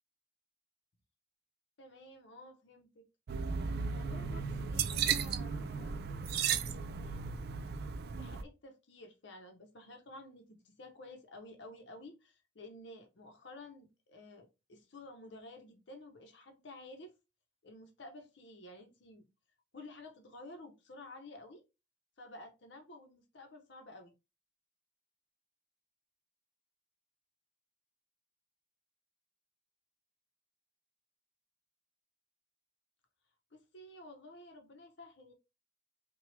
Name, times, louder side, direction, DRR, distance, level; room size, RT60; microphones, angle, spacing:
voice 1, 1.8-3.1 3.9-6.0 7.0-7.4 8.2-17.1 17.6-19.2 19.7-21.6 22.2-24.1 33.5-35.3, left 2 dB, 60° left, 0.7 m, -52 dB
sound 1, 3.3-8.4, right 6 dB, 50° right, 0.4 m, -35 dB
5.7 x 2.3 x 3.2 m
head